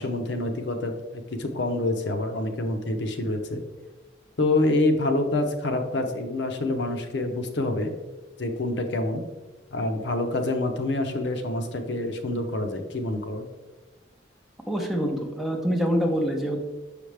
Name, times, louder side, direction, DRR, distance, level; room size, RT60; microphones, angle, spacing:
voice 1, 0.0-3.6 4.4-7.9 8.4-9.2 9.7-13.5, left 2 dB, 70° left, 6 dB, 0.7 m, -27 dB
voice 2, 14.7-16.6, equal, ahead, 1 dB, 0.7 m, -25 dB
6.3 x 5.0 x 3.3 m, 1.2 s
head